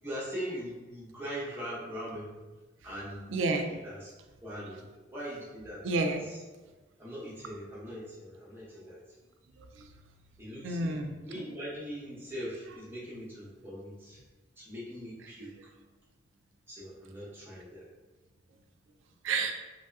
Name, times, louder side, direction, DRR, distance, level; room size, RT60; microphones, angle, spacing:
voice 1, 0.0-2.3 2.8-3.3 3.6-4.1 4.4-4.8 5.1-5.8 6.2-6.4 7.0-9.0 10.4-14.2 14.6-15.5 16.7-17.9, equal, 10° right, -8 dB, 0.7 m, -41 dB
voice 2, 3.3-3.7 5.8-6.2 10.6-11.5 15.4-15.5 19.2-19.5, right 3 dB, 85° right, 5 dB, 0.3 m, -30 dB
3.1 x 2.7 x 2.3 m, 1.2 s
head